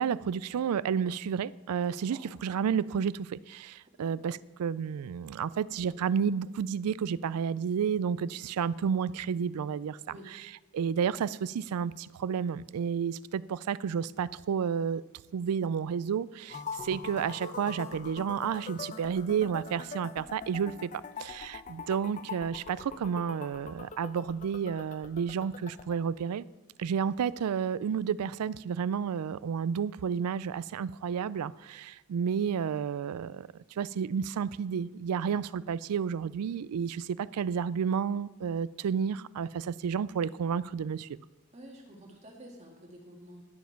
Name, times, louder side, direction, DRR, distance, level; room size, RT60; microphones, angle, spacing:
voice 1, 0.0-15.0 15.3-20.9 21.2-26.5 26.8-33.5 33.8-41.2, right 7 dB, 90° right, 19 dB, 0.4 m, -31 dB
voice 2, 1.9-2.2 4.0-4.2 10.1-10.3 41.5-43.4, right 1 dB, 30° right, 1 dB, 1.9 m, -50 dB
sound 1, 16.5-26.0, left 5 dB, 35° left, 0.6 m, -43 dB
11.5 x 7.2 x 5.9 m, 1.3 s
head